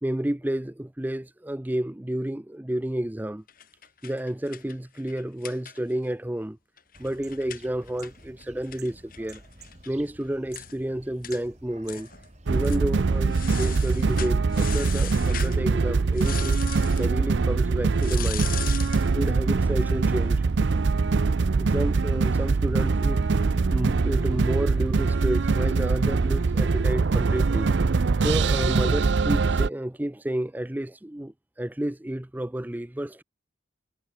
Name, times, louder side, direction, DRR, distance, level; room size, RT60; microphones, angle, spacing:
voice 1, 0.0-3.4 4.0-6.6 7.0-9.4 9.9-12.1 12.5-16.6 17.0-18.5 19.1-20.4 21.6-27.7 28.2-33.2, right 1 dB, 10° right, 0.5 m, -31 dB
sound 1, 3.5-6.1 6.4-6.5 6.8-9.9 10.2-10.3 10.5-10.8 11.2-11.4 11.9-12.3 12.6-12.8 13.3-15.6 16.1-17.1 18.0-19.1, left 11 dB, 45° left, 3.0 m, -39 dB
sound 2, 6.9-12.7, right 3 dB, 35° right, 4.8 m, -50 dB
sound 3, 12.5-29.7, right 4 dB, 65° right, 0.5 m, -23 dB
head